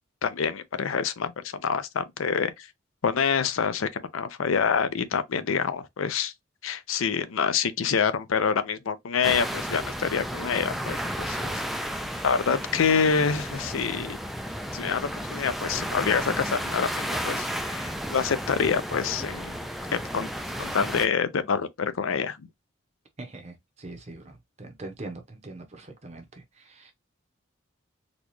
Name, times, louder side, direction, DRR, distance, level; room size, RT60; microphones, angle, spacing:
voice 1, 0.2-2.7 3.0-6.3 6.6-11.5 12.2-14.2 14.7-19.6 19.9-20.3 20.5-22.5, left 6 dB, 85° left, 0.5 m, -26 dB
sound 1, 9.2-21.1, equal, ahead, 0.3 m, -33 dB
voice 2, 23.2-26.9, right 2 dB, 35° right, 0.7 m, -42 dB
4.1 x 2.3 x 3.0 m
head